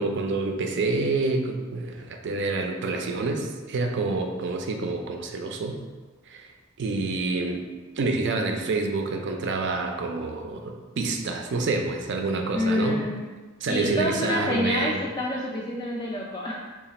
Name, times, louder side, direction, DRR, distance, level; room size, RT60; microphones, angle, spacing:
voice 1, 0.0-5.8 6.3-6.4 6.8-7.6 8.0-13.0 13.6-15.0, right 3 dB, 60° right, 4 dB, 0.4 m, -27 dB
voice 2, 12.5-13.2 13.7-16.6, left 1 dB, 20° left, -4 dB, 0.3 m, -27 dB
3.1 x 2.3 x 4.1 m, 1.3 s
head